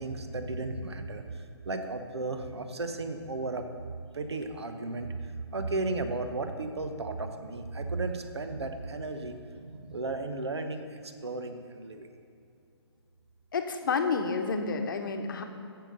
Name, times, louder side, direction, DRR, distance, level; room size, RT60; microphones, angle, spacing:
voice 1, 0.0-12.1, right 2 dB, 70° right, 7 dB, 1.1 m, -35 dB
voice 2, 13.5-15.4, left 4 dB, 50° left, 5 dB, 1.0 m, -29 dB
8.9 x 7.9 x 6.6 m, 2.6 s
figure-of-eight pair, 140°, 14 cm